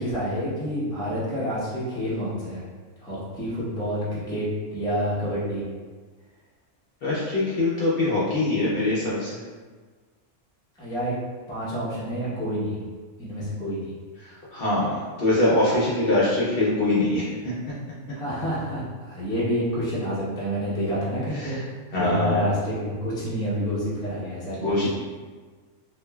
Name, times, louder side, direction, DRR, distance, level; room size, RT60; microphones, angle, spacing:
voice 1, 0.0-2.6 3.0-5.6 10.8-11.2 11.5-12.8 13.2-13.9 18.2-18.8 19.1-21.5 22.0-24.8, equal, 5° left, -9 dB, 0.5 m, -28 dB
voice 2, 7.0-9.3 14.5-17.5 21.3-21.6 21.9-22.4 24.6-24.9, left 2 dB, 60° left, -8 dB, 0.7 m, -23 dB
2.8 x 2.4 x 2.3 m, 1.4 s
omnidirectional pair, 1.3 m